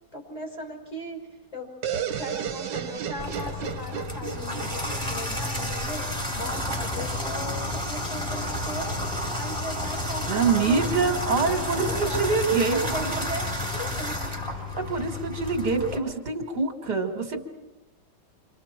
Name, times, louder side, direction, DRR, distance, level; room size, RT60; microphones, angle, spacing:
voice 1, 0.1-1.2 1.5-1.7 2.1-9.0 9.3-12.2 12.7-14.2, equal, 20° left, 0 dB, 5.7 m, -38 dB
sound 1, 1.8-5.6, right 9 dB, 90° right, 1.6 m, -33 dB
Water tap faucet / Bathtub (filling or washing), 3.2-16.0, left 1 dB, 5° left, 3.8 m, -31 dB
sound 2, 6.1-14.7, left 1 dB, 45° left, 4.2 m, -45 dB
voice 2, 10.3-13.2 14.7-17.5, right 4 dB, 70° right, 3 dB, 2.8 m, -25 dB
29.5 x 25.5 x 4.5 m, 1.1 s
omnidirectional pair, 1.9 m